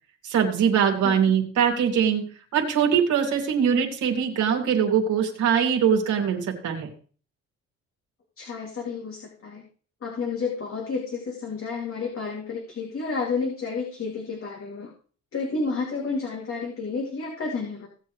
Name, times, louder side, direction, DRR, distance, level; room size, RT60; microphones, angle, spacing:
voice 1, 0.2-2.2 2.5-6.9, right 7 dB, 75° right, 1 dB, 2.6 m, -22 dB
voice 2, 8.4-9.6 10.0-14.9 15.3-17.9, left 4 dB, 45° left, -1 dB, 2.7 m, -31 dB
17.5 x 7.3 x 3.2 m, 0.41 s
cardioid pair, 90°, 30 cm